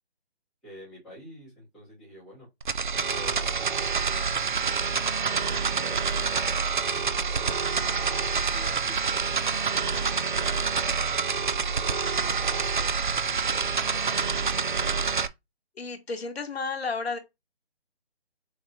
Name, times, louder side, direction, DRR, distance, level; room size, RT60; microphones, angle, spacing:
voice 1, 0.6-2.5 3.1-4.9 5.3-11.5 12.1-15.0, equal, ahead, 0.9 m, -49 dB
sound 1, 2.6-15.3, right 5 dB, 50° right, 0.4 m, -27 dB
voice 2, 15.8-17.2, left 4 dB, 75° left, 1.2 m, -32 dB
6.1 x 3.0 x 2.6 m
hypercardioid pair, 170°, 31 cm